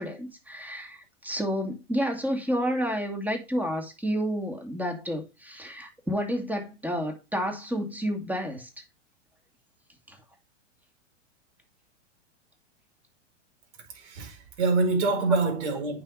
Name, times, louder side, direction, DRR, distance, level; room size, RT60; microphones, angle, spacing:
voice 1, 0.0-8.7 10.1-10.2 15.3-15.4, equal, 5° right, 2.4 m, -30 dB
voice 2, 14.0-16.0, right 3 dB, 65° right, 5.0 m, -25 dB
8.8 x 6.0 x 4.1 m
hypercardioid pair, 110°, 37 cm